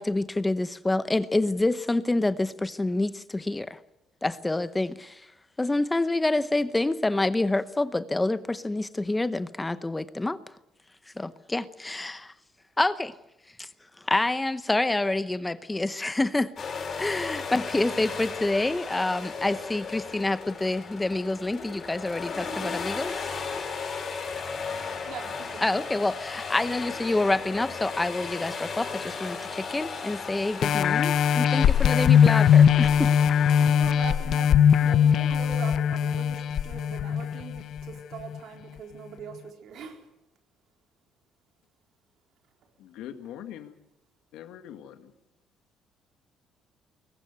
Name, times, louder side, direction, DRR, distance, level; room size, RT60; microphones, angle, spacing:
voice 1, 0.0-3.8 4.2-5.2 5.6-10.4 11.2-12.3 12.8-13.1 13.6-13.7 14.0-16.5 17.0-23.3 25.6-33.1, left 2 dB, 15° left, 14 dB, 0.8 m, -27 dB
sound 1, 16.6-33.7, left 5 dB, 40° left, 7.7 m, -36 dB
voice 2, 25.1-25.9 33.6-40.1, right 6 dB, 70° right, 3 dB, 4.3 m, -42 dB
sound 2, 30.6-37.8 38.3-38.4, left 8 dB, 60° left, 0.7 m, -20 dB
voice 3, 42.8-43.8 44.3-45.1, left 10 dB, 80° left, 8 dB, 1.9 m, -42 dB
21.5 x 19.0 x 8.1 m, 0.89 s
cardioid pair, 95°, 0 cm